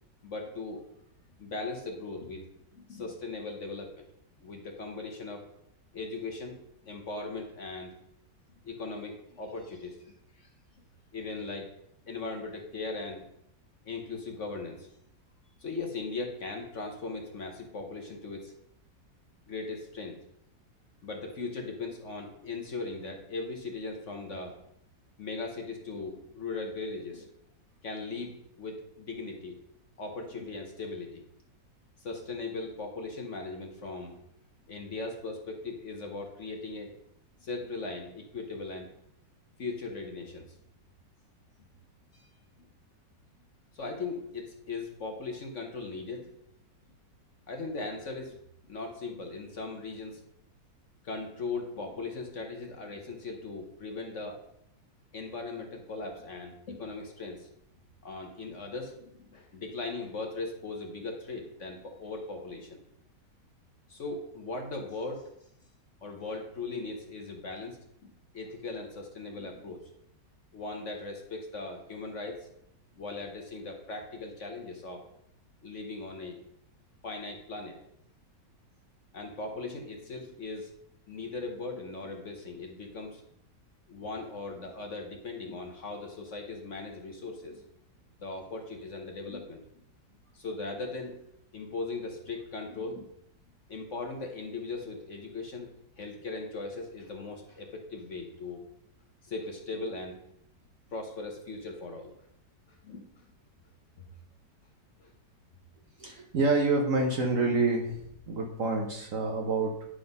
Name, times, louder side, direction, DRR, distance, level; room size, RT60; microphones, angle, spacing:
voice 1, 0.2-0.8 1.4-2.4 2.7-4.1 4.4-5.5 5.9-7.9 8.6-10.5 11.1-11.7 12.1-13.2 13.8-14.9 15.6-18.5 19.5-20.2 21.0-24.6 25.2-27.3 27.8-29.6 30.0-31.2 32.0-34.2 34.7-36.9 37.4-38.9 39.6-40.4 42.1-42.3 42.6-42.7 43.7-46.3 47.5-48.4 48.7-50.2 51.0-54.4 55.1-57.5 58.0-62.8 63.9-65.3 66.0-69.9 70.5-72.5 72.9-75.0 75.6-76.4 77.0-77.8 79.1-80.7 81.1-83.2 83.9-87.6 88.2-89.6 90.3-91.2 91.5-93.1 93.7-95.7 96.0-98.6 99.2-100.2 100.9-102.1 102.8-103.2 105.0-105.1, left 3 dB, 50° left, 3 dB, 1.1 m, -39 dB
voice 2, 106.0-108.0 108.3-109.9, right 3 dB, 55° right, 2 dB, 1.1 m, -27 dB
9.8 x 3.8 x 5.3 m, 0.77 s
omnidirectional pair, 1.9 m